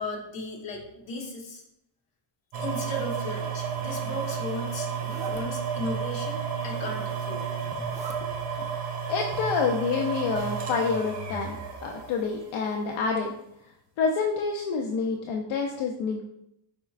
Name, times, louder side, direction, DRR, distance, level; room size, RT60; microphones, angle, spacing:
voice 1, 0.0-1.6 2.6-4.9 5.3-7.5, left 1 dB, 65° left, -1 dB, 1.4 m, -35 dB
sound 1, 2.5-12.6 13.2-13.3, right 6 dB, 60° right, 1.0 m, -32 dB
Zipper (clothing), 3.5-4.3 4.9-5.4 6.5-7.2 7.7-8.2, right 3 dB, 15° right, 0.3 m, -45 dB
voice 2, 9.1-11.6 11.8-13.3 14.0-16.2, left 5 dB, 80° left, 1 dB, 0.7 m, -28 dB
5.1 x 4.3 x 2.4 m, 0.80 s
cardioid pair, 165°, 47 cm